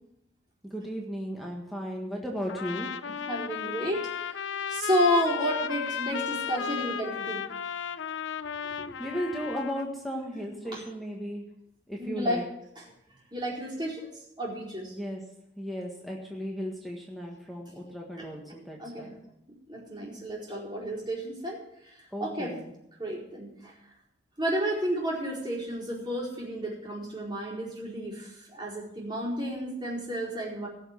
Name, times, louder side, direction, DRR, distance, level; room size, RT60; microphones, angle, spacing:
voice 1, 0.6-2.9 8.6-11.4 11.9-12.4 14.9-15.2 15.6-19.1 22.1-22.7, equal, ahead, -2 dB, 1.6 m, -35 dB
Trumpet, 2.5-9.9, left 8 dB, 80° left, 0.5 m, -35 dB
voice 2, 3.1-4.4 4.7-7.5 10.7-10.8 12.0-12.4 12.8-12.9 13.3-14.1 14.4-15.0 18.2-18.3 18.8-19.1 19.7-21.6 21.8-22.6 23.0-23.7 24.4-30.7, equal, 25° right, -5 dB, 4.5 m, -31 dB
17.5 x 6.4 x 7.3 m, 0.81 s
head